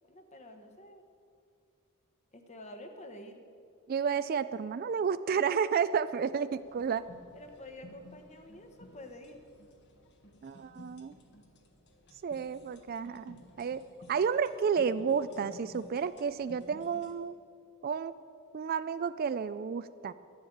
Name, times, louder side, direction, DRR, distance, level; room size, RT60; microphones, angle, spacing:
voice 1, 0.0-1.0 2.3-3.4 7.3-9.4, left 1 dB, 30° left, 6 dB, 1.2 m, -49 dB
voice 2, 3.9-7.1 10.4-11.1 12.2-13.8 14.1-17.3 17.8-18.1 18.5-20.1, right 6 dB, 40° right, 14 dB, 0.3 m, -31 dB
sound 1, 6.6-17.1, left 1 dB, 50° left, 1.5 m, -55 dB
12.0 x 10.5 x 8.4 m, 2.4 s
head